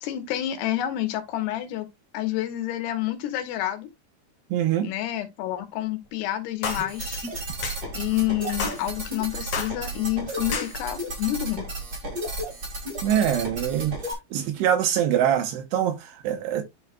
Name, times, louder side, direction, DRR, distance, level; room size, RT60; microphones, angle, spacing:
voice 1, 0.0-1.9 2.1-3.9 4.8-7.3 7.9-11.6, left 14 dB, 75° left, 3.0 m, -28 dB
voice 2, 4.5-4.9 13.0-14.0 14.3-16.6, right 10 dB, 80° right, 2.7 m, -24 dB
sound 1, 6.6-6.9 7.6-7.8 8.6-8.8 9.5-9.8 10.5-10.7, left 6 dB, 55° left, 2.0 m, -30 dB
sound 2, 6.6-14.1, right 1 dB, 40° right, 1.3 m, -33 dB
11.0 x 4.6 x 2.2 m
omnidirectional pair, 5.1 m